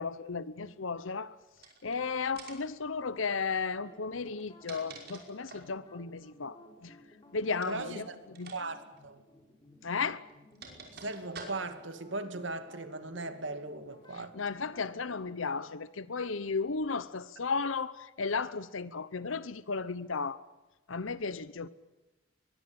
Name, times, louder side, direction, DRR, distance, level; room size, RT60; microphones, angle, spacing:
voice 1, 0.0-1.3 1.8-6.6 6.8-6.9 7.3-8.0 8.4-8.5 9.8-10.2 14.3-20.4 20.9-21.7, left 4 dB, 80° left, 0.9 m, -34 dB
sound 1, 1.6-2.0 2.4-2.8 4.3-5.8 7.6-7.9 8.3-8.6 8.9-9.0 10.0-11.9, right 4 dB, 50° right, 5.4 m, -48 dB
sound 2, 3.8-15.7, left 1 dB, 20° left, 4.6 m, -57 dB
voice 2, 7.7-8.2 8.5-9.2 10.9-14.3, right 2 dB, 70° right, 2.4 m, -38 dB
23.0 x 22.5 x 8.8 m
head